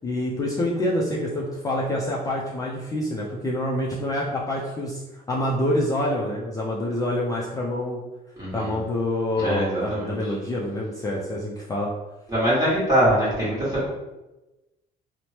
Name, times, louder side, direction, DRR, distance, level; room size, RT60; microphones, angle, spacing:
voice 1, 0.0-5.0 5.3-8.0 8.5-11.9, left 1 dB, 20° left, -4 dB, 0.4 m, -26 dB
voice 2, 8.4-8.7 9.4-10.2 12.3-13.9, equal, 20° right, -9 dB, 1.3 m, -23 dB
3.0 x 2.1 x 2.7 m, 1.0 s
cardioid pair, 110°, 17 cm